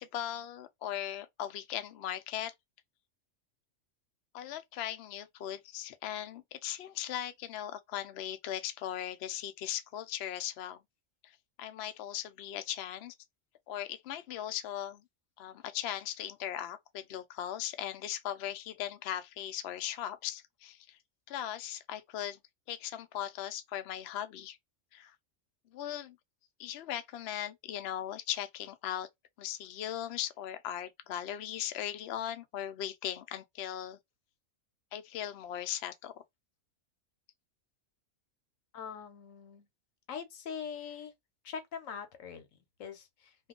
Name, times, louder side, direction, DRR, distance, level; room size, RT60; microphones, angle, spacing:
voice 1, 0.0-2.5 4.3-10.8 11.2-11.3 11.6-13.1 13.7-15.0 15.4-21.0 21.3-22.4 22.7-24.6 24.9-25.1 25.7-26.2 26.6-29.1 29.4-34.0 34.9-36.1, left 11 dB, 65° left, 0.7 m, -38 dB
voice 2, 38.7-39.7 40.1-41.1 41.4-43.5, left 7 dB, 85° left, 1.1 m, -43 dB
2.7 x 2.3 x 3.6 m
omnidirectional pair, 1.3 m